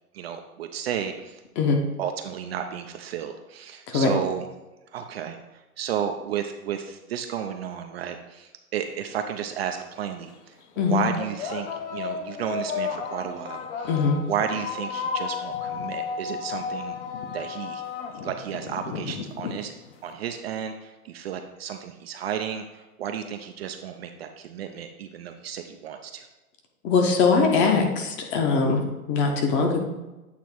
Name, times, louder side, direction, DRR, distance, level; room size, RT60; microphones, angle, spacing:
voice 1, 0.1-1.4 2.0-4.5 4.9-10.6 10.9-13.9 14.3-17.0 17.3-17.8 18.2-19.7 20.0-26.3, right 8 dB, 45° right, 6 dB, 0.5 m, -32 dB
sound 1, 9.1-9.2 10.1-10.3 11.2-20.1, left 6 dB, 50° left, 1.0 m, -33 dB
voice 2, 13.8-14.2 26.8-29.8, left 4 dB, 25° left, 3 dB, 0.9 m, -21 dB
8.4 x 3.0 x 4.4 m, 1.1 s
hypercardioid pair, 135°, 45 cm